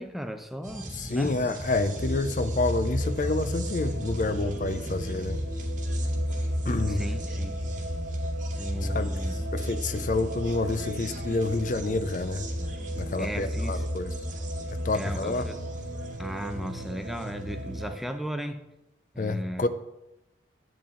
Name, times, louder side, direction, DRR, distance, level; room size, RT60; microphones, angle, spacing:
voice 1, 0.0-1.3 6.9-7.6 8.6-9.4 13.2-13.8 14.9-15.6 16.2-18.7 19.1-19.7, equal, ahead, 7 dB, 0.6 m, -36 dB
sound 1, 0.6-18.1, right 1 dB, 40° right, 1.3 m, -40 dB
voice 2, 1.0-5.4 6.7-7.0 8.8-9.1 9.5-12.5 13.0-14.1 14.8-15.5 19.2-19.7, left 3 dB, 40° left, 11 dB, 0.5 m, -28 dB
sound 2, 1.8-18.0, equal, 80° right, 1.7 m, -33 dB
11.0 x 8.6 x 3.7 m, 0.93 s
head